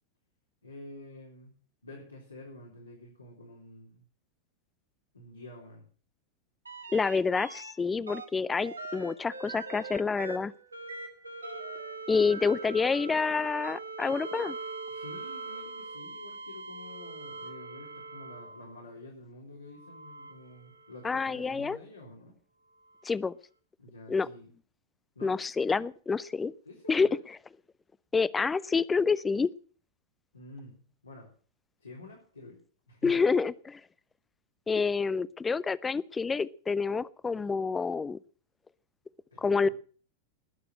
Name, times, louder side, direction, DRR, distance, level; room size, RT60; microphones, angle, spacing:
voice 1, 0.6-1.6 1.8-4.0 5.1-5.8 14.9-22.3 23.8-24.5 25.2-25.4 26.7-27.2 30.3-30.8 31.0-31.3 31.8-32.6 32.9-33.2 39.3-39.7, left 2 dB, 80° left, -2 dB, 4.0 m, -48 dB
sound 1, 6.6-7.7 8.1-18.8 19.7-21.2 23.0-23.1, right 3 dB, 80° right, 1.9 m, -42 dB
voice 2, 6.9-10.5 12.1-14.6 21.0-21.8 23.0-23.3 24.1-24.3 25.2-26.5 26.9-27.1 28.1-29.5 33.0-33.8 34.7-38.2 39.4-39.7, left 5 dB, 15° left, 20 dB, 0.6 m, -28 dB
20.5 x 7.0 x 7.6 m, 0.43 s
figure-of-eight pair, 90°, 0 cm